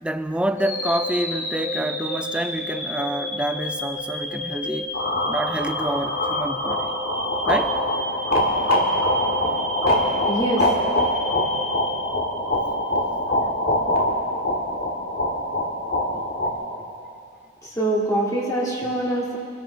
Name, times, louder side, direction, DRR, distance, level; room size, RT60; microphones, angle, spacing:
voice 1, 0.0-4.9 5.3-6.9 7.5-7.8, right 1 dB, 5° right, 9 dB, 0.3 m, -27 dB
sound 1, 0.6-12.7, left 1 dB, 80° left, 4.1 m, -31 dB
sound 2, 4.9-16.5, left 1 dB, 45° left, 1.8 m, -24 dB
voice 2, 10.3-10.7 16.1-16.3 17.0-17.1 17.6-19.4, right 1 dB, 15° left, -5 dB, 2.0 m, -24 dB
24.0 x 13.0 x 3.3 m, 2.4 s
head